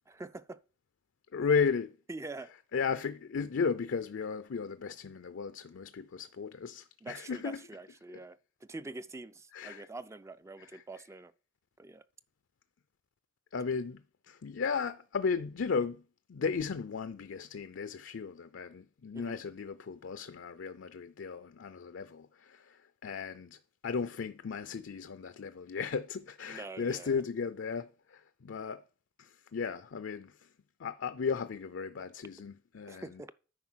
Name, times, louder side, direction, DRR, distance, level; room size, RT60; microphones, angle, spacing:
voice 1, 0.1-0.6 2.1-2.5 7.0-11.3 11.8-12.0 19.1-19.4 26.5-27.2 32.9-33.3, right 2 dB, 15° right, 0.3 m, -45 dB
voice 2, 1.3-2.0 2.7-7.6 9.5-9.9 10.6-10.8 13.5-16.0 16.3-28.8 29.2-30.5 30.8-33.2, left 5 dB, 70° left, 0.5 m, -35 dB
9.5 x 4.6 x 6.2 m
head